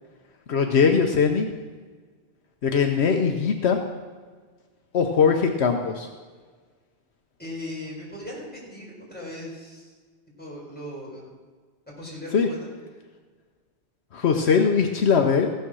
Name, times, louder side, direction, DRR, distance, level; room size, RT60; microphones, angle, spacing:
voice 1, 0.5-1.5 2.6-3.8 4.9-6.1 12.3-12.5 14.1-15.5, left 6 dB, 75° left, 4 dB, 1.1 m, -20 dB
voice 2, 7.4-9.9 10.4-11.2 12.0-12.7, left 1 dB, 10° left, -6 dB, 4.4 m, -38 dB
15.5 x 7.0 x 6.2 m, 1.5 s
omnidirectional pair, 1.1 m